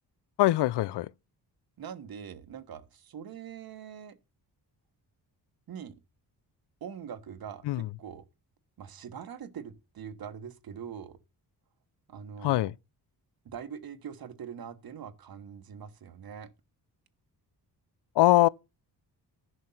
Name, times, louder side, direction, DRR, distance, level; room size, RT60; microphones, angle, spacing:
voice 1, 0.4-1.1 7.6-7.9 12.4-12.7 18.2-18.5, left 16 dB, 85° left, 0.5 m, -22 dB
voice 2, 1.8-4.2 5.7-6.0 6.8-8.3 8.8-11.2 12.1-12.7 13.4-16.5, right 8 dB, 60° right, 1.4 m, -43 dB
11.0 x 6.2 x 5.6 m
wide cardioid pair, 140°, 40 cm